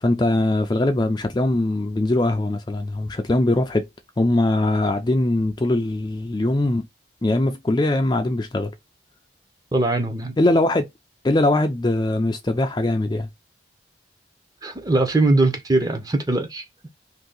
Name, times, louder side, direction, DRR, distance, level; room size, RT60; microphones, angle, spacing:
voice 1, 0.0-3.9 4.2-6.8 7.2-8.7 10.4-10.8 11.2-13.3, left 2 dB, 20° left, 0.3 m, -21 dB
voice 2, 9.7-10.3 14.6-16.6, right 2 dB, 20° right, 0.6 m, -21 dB
2.7 x 2.7 x 3.8 m
head